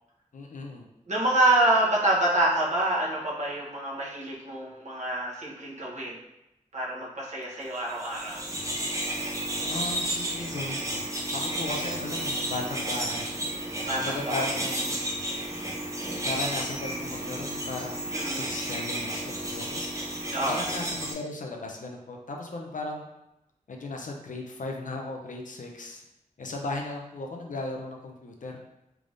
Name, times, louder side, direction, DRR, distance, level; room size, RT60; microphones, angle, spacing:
voice 1, 0.3-0.9 9.7-11.1 11.3-13.3 13.9-15.0 16.2-19.8 20.4-23.1 23.7-26.0 26.4-28.6, left 2 dB, 70° left, 1 dB, 0.5 m, -36 dB
voice 2, 1.1-6.2 6.7-8.4 13.9-14.4 18.1-18.5 20.3-20.6, right 1 dB, 60° right, -5 dB, 1.0 m, -26 dB
sound 1, 7.9-21.1, right 1 dB, 20° right, 0.7 m, -32 dB
3.4 x 3.4 x 2.5 m, 0.87 s
wide cardioid pair, 80°, 14 cm